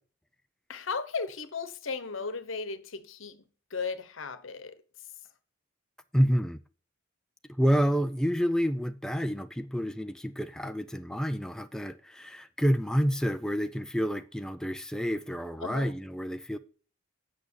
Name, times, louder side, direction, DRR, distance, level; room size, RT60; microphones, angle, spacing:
voice 1, 0.7-3.4 3.7-4.8 15.6-15.9, left 4 dB, 80° left, 1.0 m, -36 dB
voice 2, 6.1-6.6 7.5-16.6, equal, 5° left, 0.4 m, -28 dB
8.6 x 6.3 x 7.0 m
head